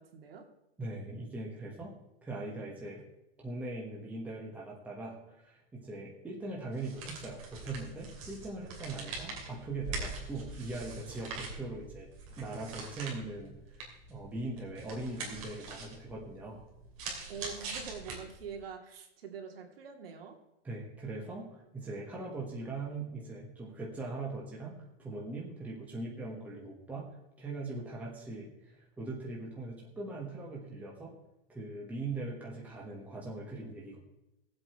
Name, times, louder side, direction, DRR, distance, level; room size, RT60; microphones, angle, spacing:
voice 1, 0.1-0.4 17.3-20.4, right 6 dB, 65° right, 3 dB, 2.5 m, -44 dB
voice 2, 0.8-1.9 2.2-3.0 3.4-12.1 12.4-16.6 20.6-27.1 27.4-31.1 31.5-34.0, right 2 dB, 5° right, -3 dB, 1.2 m, -41 dB
sound 1, 6.7-18.6, right 3 dB, 35° right, 2.8 m, -43 dB
17.5 x 7.9 x 4.4 m, 0.89 s
supercardioid pair, 180°, 31 cm